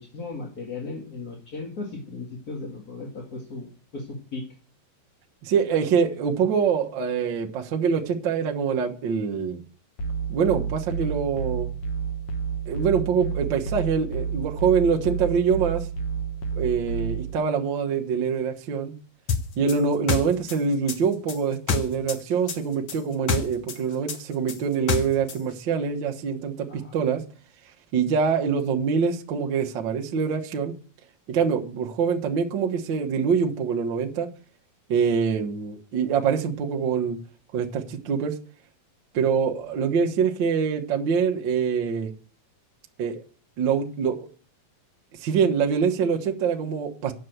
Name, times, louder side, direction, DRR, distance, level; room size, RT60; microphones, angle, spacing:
voice 1, 0.0-4.4 26.7-26.9, left 3 dB, 35° left, -1 dB, 1.6 m, -36 dB
voice 2, 5.4-9.6 10.3-11.7 12.7-15.8 16.5-18.9 19.6-27.2 27.9-30.7 31.3-34.3 34.9-37.2 37.5-38.4 39.1-42.1 43.0-43.2 43.6-44.3 45.2-47.1, right 6 dB, 75° right, 2 dB, 1.0 m, -24 dB
sound 1, 10.0-17.3, right 6 dB, 55° left, 1.6 m, -30 dB
sound 2, 19.3-22.2 22.5-25.4, left 6 dB, 75° left, 1.1 m, -27 dB
9.4 x 6.9 x 7.9 m, 0.41 s
omnidirectional pair, 4.1 m